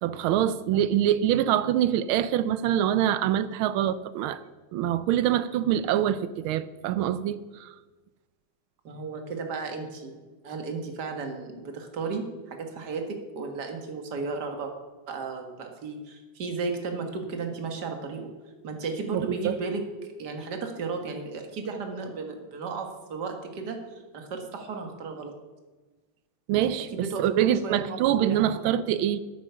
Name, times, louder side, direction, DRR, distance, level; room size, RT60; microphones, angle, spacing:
voice 1, 0.0-4.4 4.7-7.7 19.1-19.6 26.5-29.2, right 11 dB, 80° right, 15 dB, 1.4 m, -25 dB
voice 2, 8.8-14.7 15.1-18.3 18.6-25.3 26.9-28.8, right 4 dB, 50° right, 4 dB, 2.1 m, -34 dB
9.7 x 9.1 x 6.7 m, 1.2 s
omnidirectional pair, 2.3 m